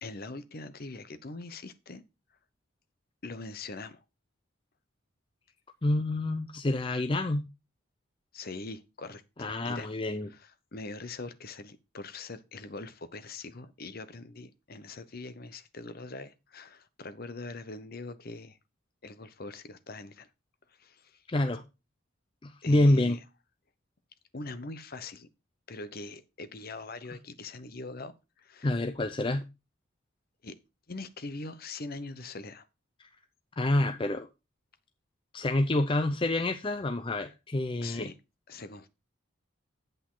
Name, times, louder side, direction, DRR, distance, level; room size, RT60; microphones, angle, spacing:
voice 1, 0.0-2.0 3.2-4.0 8.3-9.9 10.3-18.6 19.0-20.3 20.7-21.2 22.6-23.2 24.3-25.3 25.7-28.7 30.4-30.6 30.9-32.7 37.8-38.1 38.5-38.9, left 3 dB, 45° left, 0.9 m, -42 dB
voice 2, 5.8-7.5 9.4-10.3 21.3-21.6 22.4-23.2 28.6-29.5 33.0-33.1 33.6-34.3 35.3-38.1, left 1 dB, 25° left, 0.5 m, -27 dB
8.8 x 8.0 x 3.8 m
head